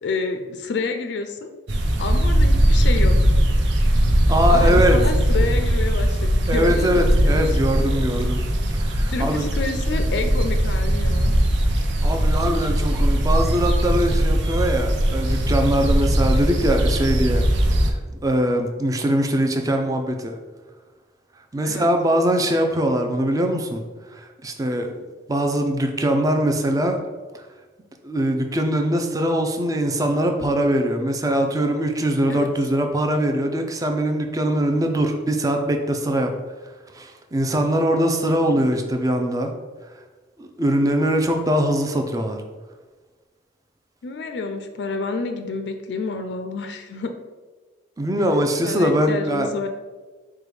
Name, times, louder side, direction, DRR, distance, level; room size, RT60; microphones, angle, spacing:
voice 1, 0.0-1.5 2.0-3.2 4.5-7.6 9.1-11.3 21.6-21.9 32.3-32.5 38.5-38.8 44.0-47.1 48.7-49.7, left 3 dB, 75° left, 7 dB, 0.4 m, -29 dB
sound 1, 1.7-17.9, equal, 80° right, 0.6 m, -19 dB
voice 2, 4.3-5.0 6.5-8.5 8.8-9.5 12.0-17.4 17.9-20.3 21.5-23.8 24.1-24.9 25.3-27.0 28.0-36.3 36.9-39.5 40.4-42.4 48.0-49.5, right 1 dB, 20° right, 4 dB, 0.4 m, -22 dB
4.9 x 2.2 x 4.7 m, 1.3 s
head